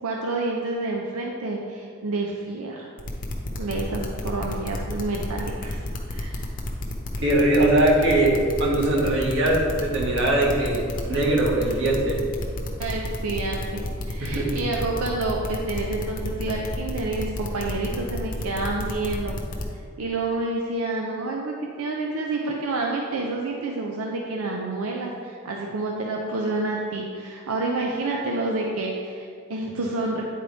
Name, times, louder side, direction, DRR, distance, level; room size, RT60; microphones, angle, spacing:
voice 1, 0.0-2.9 3.6-5.8 6.1-6.5 12.8-19.4 20.0-30.2, right 2 dB, 90° right, 0 dB, 0.5 m, -29 dB
sound 1, 3.0-19.6, left 1 dB, 40° left, 0.7 m, -31 dB
voice 2, 7.2-12.2 14.2-14.6, right 1 dB, 60° right, -4 dB, 1.4 m, -21 dB
9.2 x 4.0 x 3.3 m, 2.2 s
head